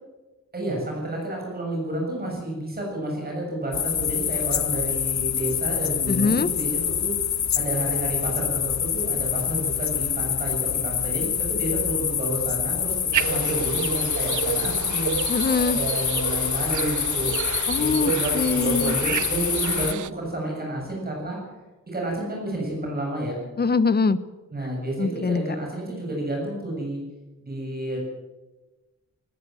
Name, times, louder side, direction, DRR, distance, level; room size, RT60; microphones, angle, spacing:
voice 1, 0.5-7.2 7.5-15.2 15.7-17.3 17.8-21.4 21.9-23.4 24.5-27.0 27.4-28.0, right 1 dB, 30° right, -2 dB, 7.5 m, -30 dB
sound 1, 3.7-19.9, left 8 dB, 65° left, 1.1 m, -26 dB
voice 2, 6.1-6.5 15.3-15.8 17.7-18.9 23.6-24.2 25.0-25.4, left 4 dB, 35° left, 15 dB, 1.0 m, -23 dB
sound 2, 13.1-20.1, right 10 dB, 80° right, 0.7 m, -30 dB
19.5 x 19.5 x 7.7 m, 1.2 s
wide cardioid pair, 165°, 30 cm